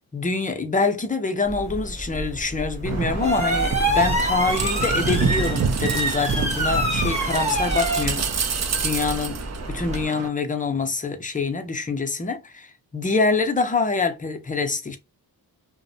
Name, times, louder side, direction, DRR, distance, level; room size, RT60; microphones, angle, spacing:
voice 1, 0.1-15.0, left 4 dB, 20° left, 0.5 m, -25 dB
sound 1, 1.5-10.0, right 1 dB, 15° right, 0.9 m, -27 dB
sound 2, 2.9-10.3, right 5 dB, 40° right, 0.5 m, -27 dB
2.6 x 2.0 x 2.6 m
cardioid pair, 55°, 44 cm